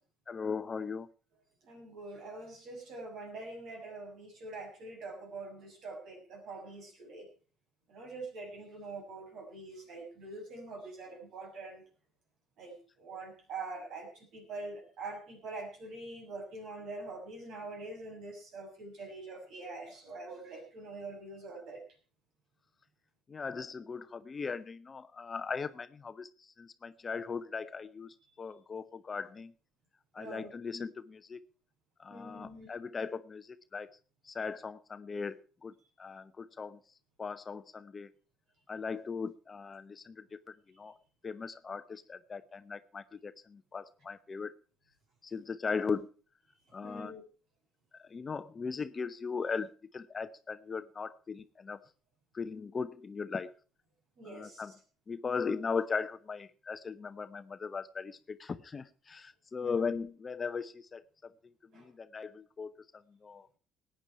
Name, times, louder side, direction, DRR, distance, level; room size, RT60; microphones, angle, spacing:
voice 1, 0.3-1.1 23.3-29.5 30.1-31.4 32.0-33.9 34.2-36.8 37.2-38.1 38.7-40.9 41.2-44.5 45.2-46.1 46.7-47.1 48.0-51.8 52.3-53.5 54.2-54.7 55.1-61.3 61.7-63.6, left 5 dB, 35° left, 13 dB, 0.8 m, -38 dB
voice 2, 1.6-7.3 7.9-11.8 12.6-21.8 30.2-30.5 32.1-32.7 46.8-47.2 54.2-54.6 59.6-60.0 61.7-61.9, right 3 dB, 60° right, 1 dB, 6.0 m, -44 dB
19.0 x 9.1 x 4.6 m, 0.38 s
hypercardioid pair, 55°, 0 cm